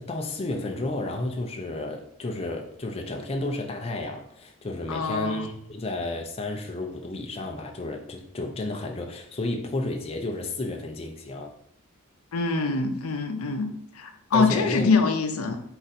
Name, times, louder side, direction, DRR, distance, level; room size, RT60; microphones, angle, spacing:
voice 1, 0.0-11.5 14.3-14.9, left 2 dB, 30° left, 3 dB, 0.5 m, -32 dB
voice 2, 4.9-5.4 12.3-13.7 13.9-15.6, left 4 dB, 70° left, 5 dB, 0.6 m, -24 dB
4.8 x 2.6 x 4.1 m, 0.70 s
head